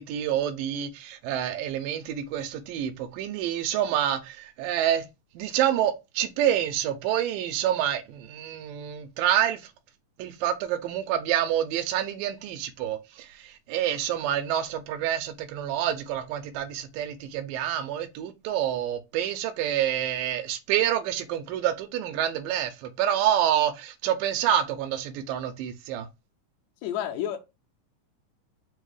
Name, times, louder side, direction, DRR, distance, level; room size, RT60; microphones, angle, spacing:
voice 1, 0.0-5.0 5.4-9.6 10.2-26.1, right 10 dB, 85° right, 2.2 m, -27 dB
voice 2, 26.8-27.4, left 10 dB, 75° left, 1.7 m, -30 dB
5.2 x 2.1 x 4.7 m
omnidirectional pair, 3.9 m